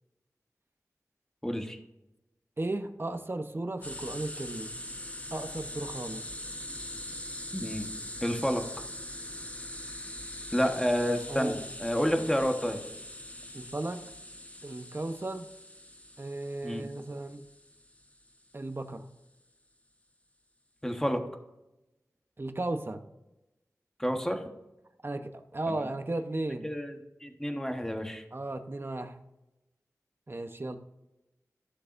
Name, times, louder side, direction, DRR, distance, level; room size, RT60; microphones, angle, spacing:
voice 1, 1.4-1.8 7.5-7.9 8.2-8.6 10.5-12.8 16.6-16.9 20.8-21.2 24.0-24.5 25.7-25.8 26.6-28.2, equal, 10° left, 4 dB, 1.3 m, -30 dB
voice 2, 2.6-4.8 5.3-6.2 11.3-11.7 13.5-14.0 14.6-15.5 16.2-17.4 18.5-19.1 22.4-23.1 25.0-26.7 28.3-29.3 30.3-30.8, right 2 dB, 40° right, 7 dB, 0.9 m, -35 dB
sound 1, 3.8-18.3, left 1 dB, 25° left, 1.2 m, -42 dB
15.0 x 6.6 x 2.6 m, 0.96 s
wide cardioid pair, 65°, 6 cm